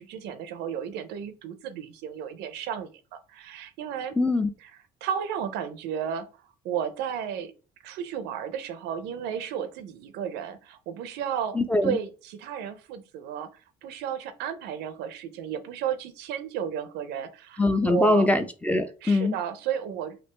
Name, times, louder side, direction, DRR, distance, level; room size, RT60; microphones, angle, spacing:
voice 1, 0.0-4.2 4.6-4.7 5.0-6.3 6.6-7.5 7.8-11.6 11.8-13.5 13.8-18.3 19.0-20.2, right 8 dB, 90° right, 0.5 m, -33 dB
voice 2, 4.2-4.5 11.5-12.0 17.6-19.4, left 2 dB, 10° left, 0.4 m, -23 dB
3.3 x 2.4 x 3.0 m
cardioid pair, 110°, 17 cm